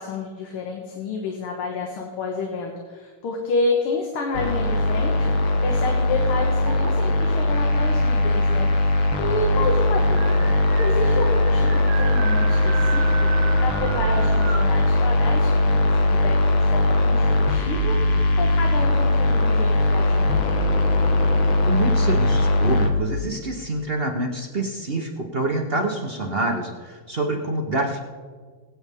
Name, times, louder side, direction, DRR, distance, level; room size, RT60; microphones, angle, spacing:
voice 1, 0.0-8.7 9.2-10.5 10.8-20.5, left 3 dB, 85° left, 1 dB, 2.2 m, -29 dB
sound 1, 4.3-22.9, left 2 dB, 65° left, 1.9 m, -20 dB
sound 2, 4.8-6.1 6.6-7.3 8.3-8.4 8.6-8.7 9.1-14.8, right 8 dB, 85° right, 1.8 m, -36 dB
voice 2, 21.7-28.0, right 2 dB, 45° right, 2 dB, 0.7 m, -26 dB
21.5 x 8.8 x 3.6 m, 1.5 s
omnidirectional pair, 2.4 m